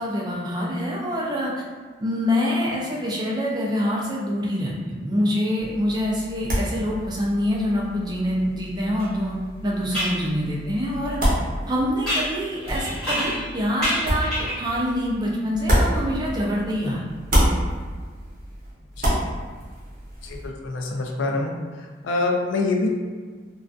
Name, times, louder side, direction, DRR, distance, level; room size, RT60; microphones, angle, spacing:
voice 1, 0.0-1.5 2.0-11.2 11.7-14.3 14.6-17.0, equal, 20° right, -3 dB, 0.3 m, -25 dB
sound 1, 5.6-16.8 17.1-20.5, equal, 45° right, 0.7 m, -28 dB
sound 2, 9.0-9.1 9.9-10.2 12.1-13.5 13.8-14.7, equal, 5° left, 1.0 m, -27 dB
voice 2, 20.2-21.5 22.0-22.9, left 3 dB, 75° left, 1 dB, 0.4 m, -25 dB
2.4 x 2.3 x 2.3 m, 1.5 s
head